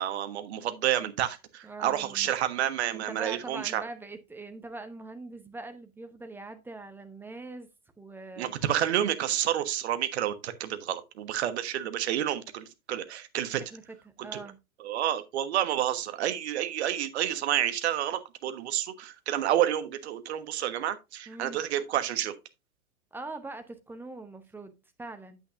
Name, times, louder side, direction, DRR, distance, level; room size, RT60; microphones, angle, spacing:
voice 1, 0.0-3.8 8.4-13.6 14.3-14.4 14.8-22.3, right 11 dB, 50° right, 1.3 m, -29 dB
voice 2, 1.6-2.3 2.9-7.7 8.0-8.5 13.7-14.6 21.3-21.6 23.1-25.4, right 3 dB, 5° right, 0.8 m, -42 dB
9.0 x 8.2 x 2.5 m
figure-of-eight pair, 105°, 42 cm